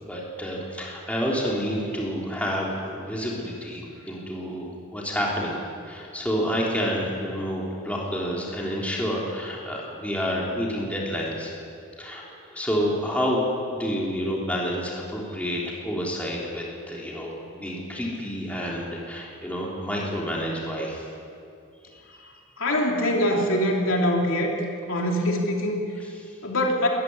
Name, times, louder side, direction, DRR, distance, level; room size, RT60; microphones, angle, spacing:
voice 1, 0.0-11.5 12.0-12.2 12.5-13.4 13.7-21.1 22.1-22.3 26.0-26.3, equal, 5° left, -4 dB, 3.5 m, -29 dB
voice 2, 22.6-24.5 24.9-25.8 26.4-26.9, left 1 dB, 65° left, 0 dB, 3.0 m, -23 dB
22.5 x 14.0 x 9.7 m, 2.5 s
head